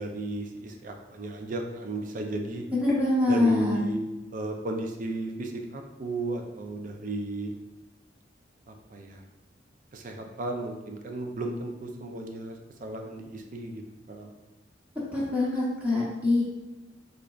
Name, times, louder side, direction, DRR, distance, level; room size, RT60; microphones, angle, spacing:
voice 1, 0.0-2.6 3.3-4.0 4.3-7.5 8.7-9.2 9.9-14.3, right 2 dB, 45° right, 3 dB, 0.4 m, -34 dB
voice 2, 2.7-3.8 15.1-16.4, left 2 dB, 10° right, -8 dB, 0.9 m, -24 dB
3.8 x 3.3 x 2.4 m, 1.1 s
head